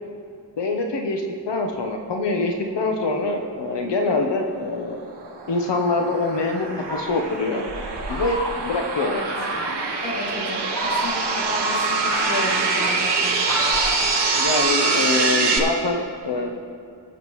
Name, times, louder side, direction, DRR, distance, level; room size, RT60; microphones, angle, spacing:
voice 1, 0.6-5.0 5.5-7.7 8.1-9.2 14.4-16.6, left 3 dB, 90° left, 2 dB, 1.0 m, -24 dB
sound 1, 4.8-15.6, right 4 dB, 80° right, 1.3 m, -24 dB
Fowl, 6.8-8.8 9.3-9.9 10.5-11.4 11.9-14.7, right 1 dB, 10° left, 2.1 m, -31 dB
voice 2, 10.0-13.2, left 1 dB, 70° left, -5 dB, 2.7 m, -32 dB
21.5 x 7.3 x 3.1 m, 2.2 s
wide cardioid pair, 150°, 41 cm